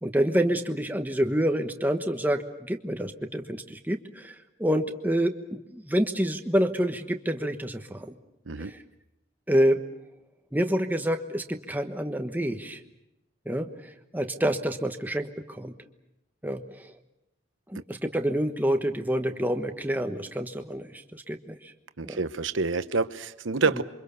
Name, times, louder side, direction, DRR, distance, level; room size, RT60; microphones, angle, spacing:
voice 1, 0.0-8.1 8.6-8.8 9.5-9.8 10.5-12.8 13.4-15.7 16.4-16.9 17.7-21.7 22.0-22.2 23.5-23.6, equal, 10° right, 6 dB, 1.2 m, -28 dB
voice 2, 22.0-23.8, right 4 dB, 90° right, 12 dB, 1.0 m, -27 dB
28.0 x 24.5 x 7.0 m, 0.91 s
head